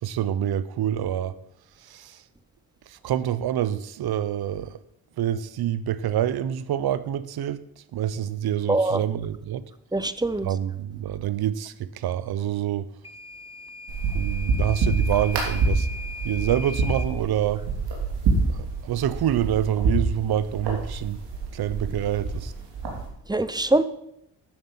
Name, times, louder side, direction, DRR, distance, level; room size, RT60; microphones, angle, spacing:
voice 1, 0.0-1.4 1.8-2.2 2.9-4.8 5.2-7.6 7.9-9.7 10.4-12.9 14.1-15.9 16.2-17.7 18.5-21.2 21.5-22.5, right 10 dB, 70° right, 0.8 m, -27 dB
voice 2, 8.7-9.0 9.9-10.5 23.3-23.8, right 2 dB, 10° right, 0.7 m, -23 dB
Microwave oven / Alarm, 13.0-17.1, left 3 dB, 15° left, 1.0 m, -39 dB
sound 1, 13.9-23.1, right 3 dB, 90° right, 3.0 m, -27 dB
12.0 x 7.5 x 5.5 m
cardioid pair, 75°, 39 cm